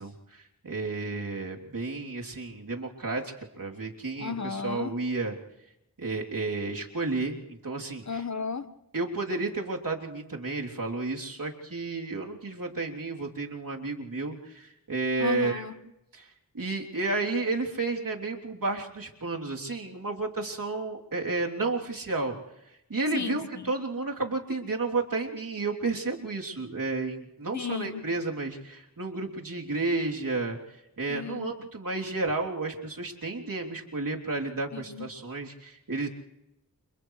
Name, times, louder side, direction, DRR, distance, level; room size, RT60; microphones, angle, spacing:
voice 1, 0.0-5.4 6.0-8.2 8.9-15.6 16.1-22.4 22.9-36.1, right 3 dB, 60° right, 3.4 m, -32 dB
voice 2, 4.2-4.9 8.1-8.7 15.2-15.8 23.1-23.7 27.5-28.0 31.1-31.5 34.7-35.1, left 5 dB, 50° left, 1.3 m, -34 dB
29.5 x 28.0 x 3.3 m
cardioid pair, 45°, 37 cm